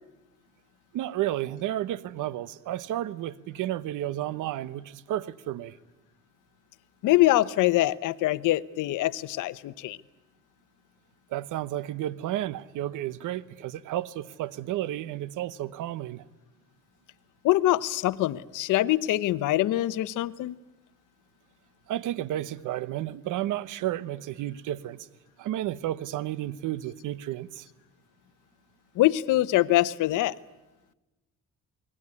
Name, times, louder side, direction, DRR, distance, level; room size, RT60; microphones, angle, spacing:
voice 1, 0.9-5.8 11.3-16.2 21.9-25.1 25.4-27.7, right 13 dB, 90° right, 18 dB, 1.1 m, -32 dB
voice 2, 7.0-10.0 17.4-20.5 29.0-30.4, left 16 dB, 90° left, 17 dB, 0.9 m, -24 dB
29.0 x 21.0 x 9.7 m, 1.1 s
cardioid pair, 90°, 30 cm